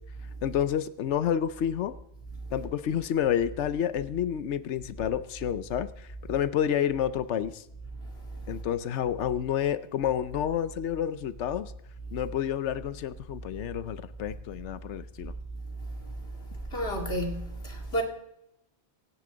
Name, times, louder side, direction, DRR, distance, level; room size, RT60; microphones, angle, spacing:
voice 1, 0.4-1.9 2.5-7.6 8.5-11.7 12.1-15.3, left 9 dB, 85° left, 1.0 m, -29 dB
voice 2, 16.7-18.0, right 1 dB, 60° left, 2.7 m, -31 dB
25.0 x 9.8 x 3.9 m
omnidirectional pair, 1.2 m